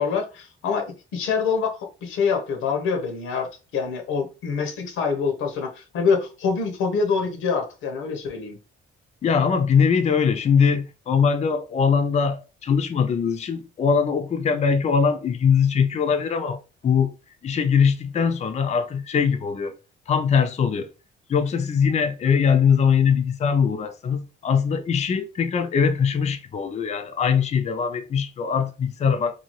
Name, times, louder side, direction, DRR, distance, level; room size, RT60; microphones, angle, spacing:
voice 1, 0.0-8.6, left 5 dB, 90° left, 0.8 m, -25 dB
voice 2, 9.2-17.1 17.4-19.8 20.1-20.9 21.3-29.4, left 6 dB, 35° left, 0.4 m, -21 dB
2.7 x 2.3 x 3.0 m
cardioid pair, 90°, 20 cm